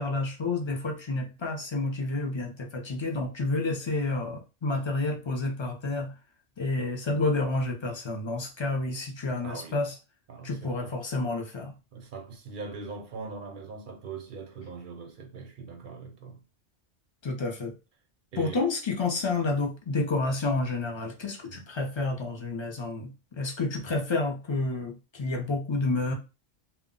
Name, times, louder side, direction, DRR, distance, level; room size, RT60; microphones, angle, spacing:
voice 1, 0.0-6.1 6.6-9.9 10.4-11.7 17.2-17.7 18.4-23.1 23.4-26.1, left 2 dB, 40° left, 0.4 m, -29 dB
voice 2, 9.4-9.8 10.3-11.0 11.9-16.4 18.3-18.7 21.4-21.7, right 4 dB, 55° right, 0.6 m, -41 dB
2.2 x 2.1 x 3.7 m
omnidirectional pair, 1.2 m